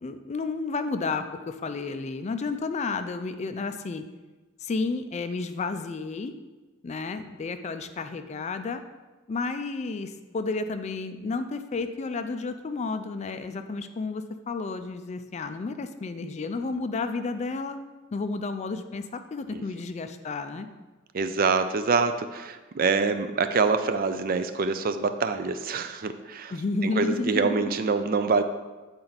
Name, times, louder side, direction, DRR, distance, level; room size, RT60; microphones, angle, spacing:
voice 1, 0.0-4.0 4.6-6.3 6.8-8.8 9.3-17.8 18.1-20.7 26.5-27.7, left 3 dB, 30° left, 9 dB, 0.3 m, -31 dB
voice 2, 21.1-26.5 26.8-28.4, right 4 dB, 45° right, 9 dB, 0.4 m, -25 dB
8.6 x 4.4 x 4.0 m, 1.2 s
head